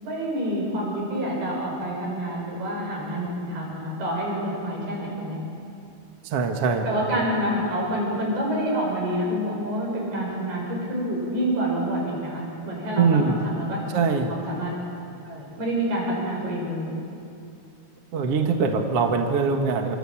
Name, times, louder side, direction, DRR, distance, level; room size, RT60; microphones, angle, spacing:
voice 1, 0.0-5.4 6.8-13.8 14.3-14.7 15.3-16.9, right 1 dB, 70° right, -2 dB, 8.8 m, -27 dB
voice 2, 6.2-6.9 7.1-7.2 13.0-13.4 13.9-14.3 18.1-20.0, right 5 dB, 50° right, 3 dB, 2.0 m, -22 dB
27.0 x 23.5 x 8.8 m, 2.6 s
omnidirectional pair, 4.7 m